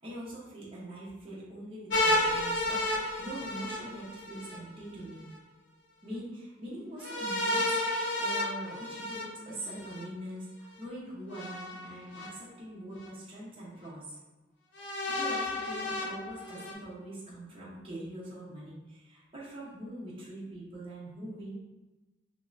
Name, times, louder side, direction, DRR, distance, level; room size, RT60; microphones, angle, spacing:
voice 1, 0.0-5.3 6.0-14.2 14.9-21.5, right 1 dB, 30° right, -7 dB, 0.9 m, -43 dB
sound 1, 1.9-4.6 7.0-10.0 11.3-12.3 13.0-13.1 14.7-16.7, left 1 dB, 80° left, 0.8 m, -32 dB
3.7 x 3.0 x 2.5 m, 1.1 s
head